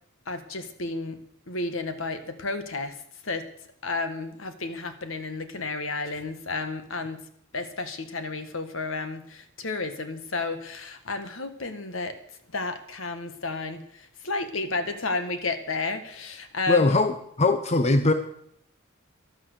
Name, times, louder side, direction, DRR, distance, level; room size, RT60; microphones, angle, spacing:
voice 1, 0.3-1.2 1.5-2.9 3.2-3.4 3.8-7.2 7.5-12.2 12.5-17.0, left 3 dB, 70° left, 9 dB, 1.6 m, -32 dB
voice 2, 16.7-18.1, left 3 dB, 30° left, 8 dB, 0.9 m, -21 dB
12.5 x 12.0 x 6.7 m, 0.68 s
head